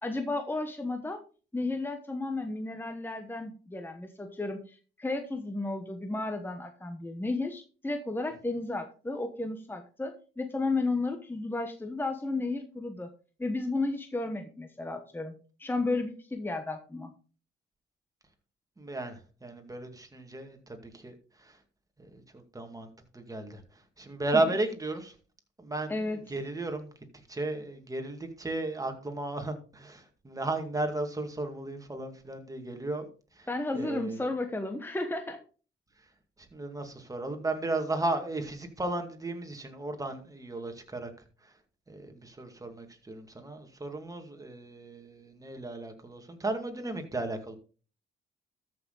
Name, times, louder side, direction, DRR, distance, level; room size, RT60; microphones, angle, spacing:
voice 1, 0.0-1.2 1.5-13.1 13.4-17.1 25.9-26.2 33.5-35.4, left 2 dB, 10° left, 1.1 m, -33 dB
voice 2, 18.8-21.6 22.0-22.9 23.1-23.6 24.0-25.1 25.6-26.9 27.3-33.1 33.4-33.5 33.7-34.3 36.5-41.1 41.9-47.6, right 2 dB, 15° right, 2.2 m, -35 dB
13.5 x 6.2 x 4.0 m
cardioid pair, 90°, 20 cm